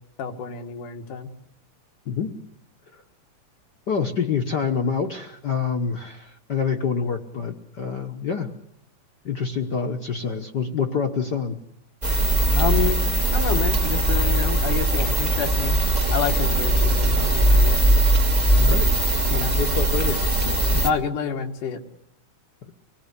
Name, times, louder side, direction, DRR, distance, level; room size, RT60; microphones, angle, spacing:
voice 1, 0.2-1.3 12.5-13.0 13.3-15.8 16.1-17.8 19.3-19.5 20.7-21.8, left 7 dB, 90° left, 6 dB, 3.3 m, -28 dB
voice 2, 3.9-8.5 9.2-11.6 18.6-18.9 19.6-20.2 22.6-22.7, left 6 dB, 60° left, 6 dB, 1.1 m, -26 dB
sound 1, 12.0-20.9, right 1 dB, 25° right, 0.8 m, -20 dB
25.0 x 19.5 x 8.2 m, 0.76 s
omnidirectional pair, 3.6 m